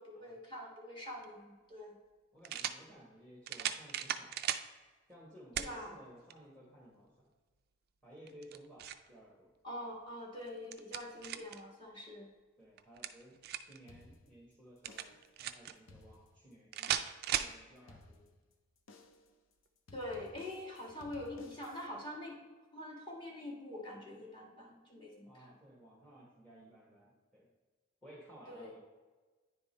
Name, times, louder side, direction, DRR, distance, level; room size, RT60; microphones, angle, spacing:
voice 1, 0.0-2.0 5.6-6.0 9.6-12.3 19.9-22.4 22.7-25.5 28.5-28.7, left 1 dB, 20° left, -3 dB, 1.5 m, -45 dB
sound 1, 1.2-1.3 2.4-2.8 3.5-4.7 5.6-5.7 6.3-6.4 8.3-9.1 10.4-11.6 12.8-13.8 14.8-15.7 16.7-17.6, right 10 dB, 45° right, 0.3 m, -37 dB
voice 2, 2.3-4.4 5.1-7.3 8.0-9.5 12.6-13.3 13.6-18.3 25.3-27.5 28.0-28.8, right 1 dB, 5° left, -5 dB, 1.1 m, -57 dB
sound 2, 13.9-14.5 14.9-15.4 15.8-16.5 16.9-17.4 17.9-18.5 18.9-19.4 19.9-21.9, left 2 dB, 70° left, 0.7 m, -58 dB
10.0 x 3.6 x 4.2 m, 1.3 s
head